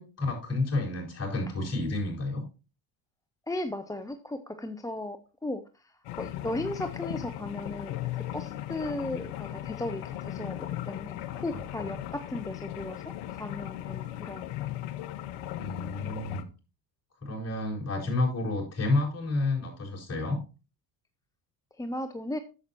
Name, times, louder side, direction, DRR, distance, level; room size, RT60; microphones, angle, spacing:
voice 1, 0.0-2.4 11.3-11.9 15.6-16.5 17.2-20.4, left 2 dB, 30° left, -3 dB, 4.5 m, -30 dB
voice 2, 3.5-5.9 6.2-14.7 21.8-22.4, left 1 dB, 5° left, 9 dB, 0.6 m, -36 dB
sound 1, 6.0-16.4, left 13 dB, 70° left, 0.9 m, -37 dB
10.5 x 7.4 x 2.9 m, 0.32 s
hypercardioid pair, 55°, 50 cm